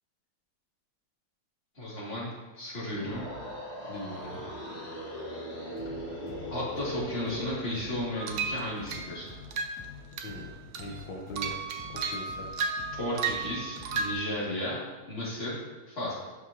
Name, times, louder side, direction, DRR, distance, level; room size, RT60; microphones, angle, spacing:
voice 1, 1.8-3.2 6.0-6.2 6.5-9.3 13.0-14.8 15.1-15.6 15.9-16.1, left 1 dB, 35° left, -7 dB, 2.6 m, -34 dB
sound 1, 2.9-7.8, equal, 65° left, 2.7 m, -39 dB
voice 2, 3.9-4.5 10.2-11.6 11.9-12.5, left 1 dB, 85° left, -1 dB, 1.7 m, -41 dB
sound 2, 5.8-14.2, left 3 dB, 15° left, 2.0 m, -48 dB
sound 3, 8.2-9.1 9.5-9.8 10.2-10.4 10.7-14.1, right 5 dB, 65° right, 0.7 m, -34 dB
11.5 x 5.9 x 2.8 m, 1.2 s
omnidirectional pair, 1.9 m